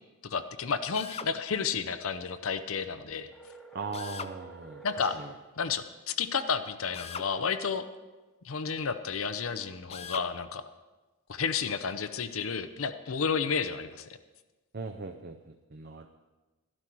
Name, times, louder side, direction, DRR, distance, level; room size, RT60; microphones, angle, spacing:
voice 1, 0.2-3.3 4.8-5.2 5.6-7.9 8.4-10.6 11.3-14.2, left 6 dB, 65° left, 10 dB, 0.6 m, -31 dB
Drill, 0.9-1.3 3.9-4.4 6.9-7.3 9.9-10.3, left 6 dB, 25° left, 0.4 m, -40 dB
sound 1, 3.3-5.4, right 3 dB, ahead, 1.0 m, -50 dB
voice 2, 3.7-5.3 14.7-16.1, right 4 dB, 45° right, 5 dB, 0.6 m, -39 dB
12.5 x 12.0 x 4.6 m, 1.2 s
head